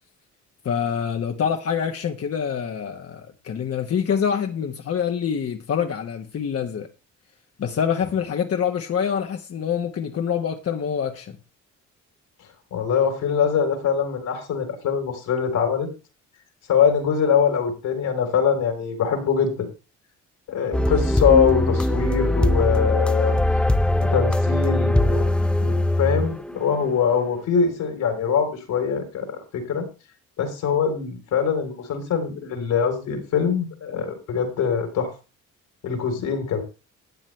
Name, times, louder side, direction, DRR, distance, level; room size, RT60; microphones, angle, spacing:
voice 1, 0.6-6.9 7.6-11.4, left 7 dB, 50° left, 1.3 m, -26 dB
voice 2, 12.7-15.9 16.7-19.7 20.5-23.3 24.0-25.2 25.6-29.3 29.5-29.8 30.4-35.1 35.8-36.6, left 7 dB, 80° left, 4.3 m, -23 dB
sound 1, 20.7-26.8, left 1 dB, 5° left, 0.5 m, -21 dB
13.5 x 9.1 x 3.3 m
cardioid pair, 90°, 30 cm